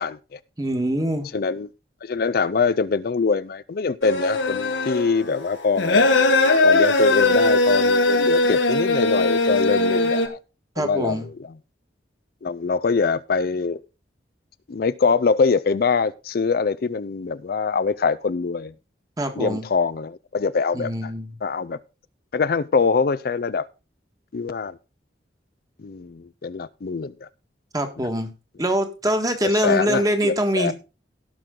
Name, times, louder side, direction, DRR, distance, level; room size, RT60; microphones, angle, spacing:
voice 1, 0.0-0.4 1.3-1.7 2.0-6.1 6.6-10.4 10.8-11.3 12.4-13.8 14.7-18.7 19.4-21.1 21.4-21.8 22.3-23.7 24.3-24.8 25.8-27.3 28.0-28.1 29.4-30.7, left 4 dB, 55° left, 0.4 m, -23 dB
voice 2, 0.6-1.3 10.8-11.3 19.2-19.6 20.7-21.3 27.7-28.3 28.6-30.7, equal, 20° right, 1.5 m, -23 dB
sound 1, 4.0-10.3, left 2 dB, 90° left, 1.5 m, -19 dB
17.0 x 6.1 x 3.8 m
head